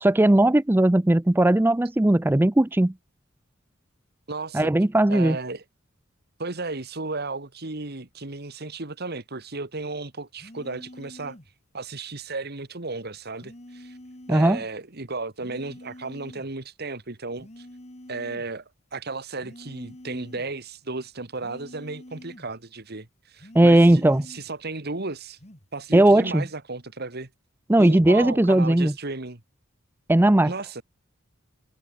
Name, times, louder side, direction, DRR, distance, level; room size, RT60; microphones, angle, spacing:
voice 1, 0.0-2.9 4.5-5.4 14.3-14.6 23.5-24.2 25.9-26.4 27.7-28.9 30.1-30.5, right 1 dB, 10° right, 0.4 m, -18 dB
voice 2, 4.3-4.7 5.1-5.6 6.4-11.4 11.7-14.0 14.3-17.7 18.1-18.6 18.9-25.4 25.7-27.3 27.8-29.4 30.4-30.8, right 3 dB, 50° right, 2.0 m, -34 dB
sound 1, 10.4-11.5 13.4-14.5 15.4-16.5 17.4-18.5 19.4-20.5 21.4-22.5 23.4-24.5 25.4-25.7, left 1 dB, 35° left, 2.3 m, -46 dB
head